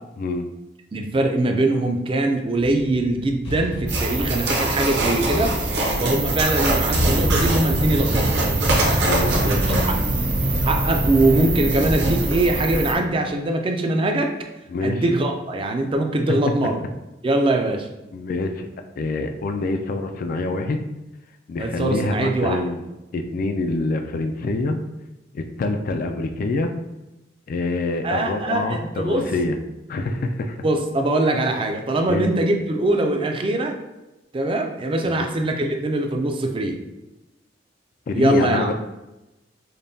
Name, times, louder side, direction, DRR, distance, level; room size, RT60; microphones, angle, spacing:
voice 1, 0.9-5.6 6.0-8.3 9.4-10.0 10.6-14.3 14.8-16.8 17.2-17.9 21.6-22.6 28.0-29.3 30.6-33.8 34.3-36.8 38.1-38.7, right 2 dB, 30° right, 4 dB, 0.4 m, -22 dB
sound 1, 2.6-11.2, equal, 65° left, 0.8 m, -32 dB
sound 2, 3.9-12.9, right 2 dB, 60° right, 0.8 m, -22 dB
voice 2, 9.0-9.9 14.7-15.1 18.1-18.7 19.0-20.8 21.5-22.8 23.1-24.8 25.3-26.7 27.5-29.6 29.9-30.6 32.1-32.3 35.0-35.3 38.1-38.7, left 2 dB, 50° left, 6 dB, 0.3 m, -26 dB
5.2 x 2.2 x 2.6 m, 1.0 s
head